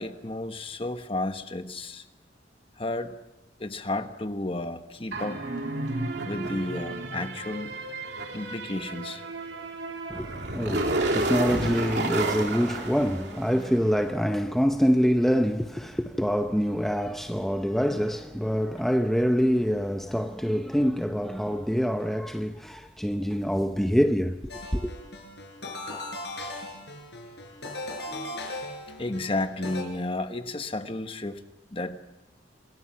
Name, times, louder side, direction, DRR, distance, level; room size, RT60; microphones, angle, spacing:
voice 1, 0.0-2.0 2.8-3.2 3.6-5.4 6.2-7.8 8.3-9.2 28.1-28.4 29.0-31.4 31.7-32.0, left 2 dB, 30° left, 1.2 m, -32 dB
sound 1, 5.1-13.8, right 2 dB, 65° right, 3.0 m, -31 dB
voice 2, 10.1-24.9, equal, ahead, 0.7 m, -25 dB
sound 2, 24.5-29.8, left 2 dB, 65° left, 6.1 m, -38 dB
27.0 x 22.0 x 5.9 m
head